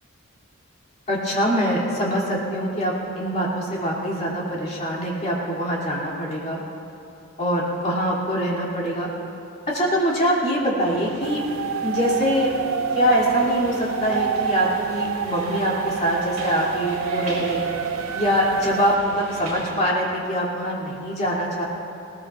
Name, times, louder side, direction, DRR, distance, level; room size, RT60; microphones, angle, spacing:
voice 1, 1.1-6.6 7.4-9.1 9.7-11.4 11.8-12.6 12.9-17.7 18.1-21.6, equal, 35° left, -5 dB, 2.9 m, -24 dB
sound 1, 10.8-19.8, right 2 dB, 40° right, 3.7 m, -40 dB
sound 2, 11.2-19.0, right 7 dB, 70° right, 0.4 m, -28 dB
21.0 x 18.0 x 2.5 m, 2.8 s
head